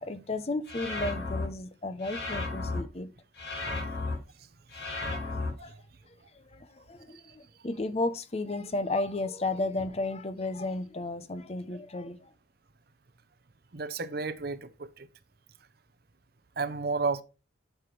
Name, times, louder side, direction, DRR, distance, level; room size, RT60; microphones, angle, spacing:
voice 1, 0.0-3.1 3.6-3.7 5.1-5.7 6.3-12.3, left 2 dB, 30° left, 0.7 m, -34 dB
sound 1, 0.7-1.4 2.0-2.8 3.4-4.1 4.7-5.5, left 2 dB, 60° left, 4.7 m, -33 dB
voice 2, 13.7-15.1 16.6-17.2, right 4 dB, 50° right, 0.7 m, -32 dB
11.0 x 5.9 x 3.2 m
head